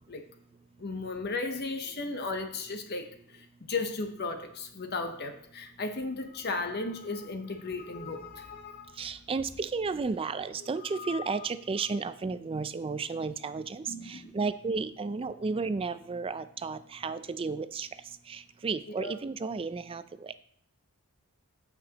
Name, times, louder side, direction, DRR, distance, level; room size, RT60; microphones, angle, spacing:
voice 1, 0.8-9.0 10.9-11.4 13.9-14.4 19.0-19.2, left 3 dB, 45° left, 6 dB, 0.8 m, -35 dB
voice 2, 9.0-17.9 18.3-20.0, right 4 dB, 25° right, 13 dB, 0.3 m, -33 dB
15.0 x 6.0 x 2.9 m, 0.66 s
head